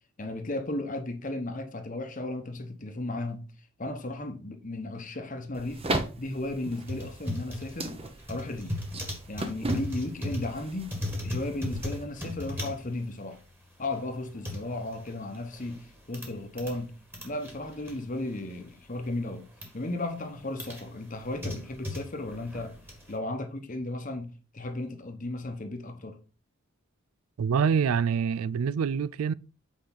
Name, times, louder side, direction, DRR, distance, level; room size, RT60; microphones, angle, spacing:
voice 1, 0.2-3.5 3.8-5.8 6.2-8.0 8.3-8.8 9.3-11.0 11.2-13.4 13.8-16.9 17.2-19.5 19.7-22.7 23.1-26.2, left 2 dB, 35° left, 1.1 m, -35 dB
sound 1, 5.5-12.1, right 2 dB, 25° right, 0.8 m, -37 dB
sound 2, 6.7-16.8 17.1-18.7 19.1-19.7 20.2-23.2, left 1 dB, 10° right, 1.6 m, -38 dB
voice 2, 27.4-29.3, right 6 dB, 75° right, 0.3 m, -26 dB
8.3 x 4.9 x 3.9 m
head